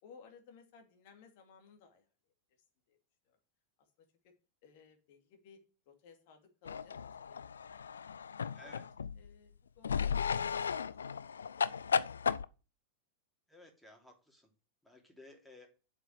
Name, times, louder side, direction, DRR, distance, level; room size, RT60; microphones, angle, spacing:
voice 1, 0.0-2.1 2.9-3.0 3.3-3.4 3.8-4.3 4.6-5.6 5.9-8.8 9.2-11.2, left 6 dB, 50° left, 4 dB, 2.8 m, -60 dB
sound 1, 6.7-9.3 9.8-12.5, left 6 dB, 70° left, 0.4 m, -35 dB
voice 2, 8.5-8.9 13.5-14.5 14.8-15.7, left 1 dB, 5° left, 2 dB, 3.3 m, -56 dB
8.0 x 6.1 x 7.9 m, 0.34 s
figure-of-eight pair, 90°, 0 cm